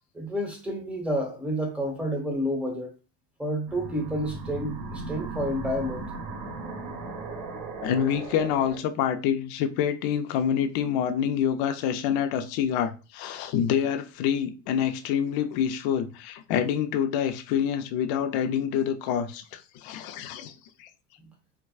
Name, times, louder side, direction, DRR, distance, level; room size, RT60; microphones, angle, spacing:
voice 1, 0.1-2.9 3.4-6.1, equal, 5° right, 1.0 m, -30 dB
sound 1, 3.7-8.8, right 3 dB, 45° right, 1.0 m, -37 dB
voice 2, 7.8-20.5 20.8-20.9, left 9 dB, 65° left, 0.6 m, -27 dB
4.5 x 2.2 x 2.3 m
cardioid pair, 135°, 40 cm